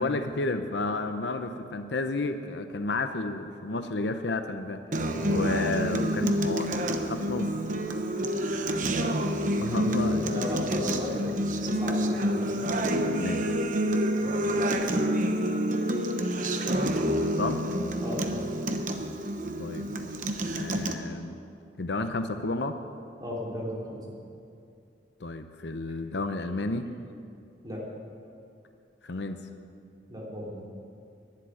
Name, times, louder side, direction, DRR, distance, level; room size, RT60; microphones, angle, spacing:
voice 1, 0.0-7.5 9.6-10.4 13.2-13.5 16.8-16.9 17.2-17.6 19.6-20.1 20.6-21.4 21.8-22.8 25.2-26.9 29.0-29.5, left 2 dB, 70° left, 8 dB, 0.8 m, -32 dB
Acoustic guitar, 4.9-20.9, equal, 45° right, 0.9 m, -28 dB
voice 2, 9.6-12.7 14.2-14.5 18.0-18.4 23.2-24.1 27.6-27.9 30.1-30.6, equal, 20° right, -5 dB, 3.6 m, -36 dB
11.5 x 10.5 x 9.5 m, 2.5 s
head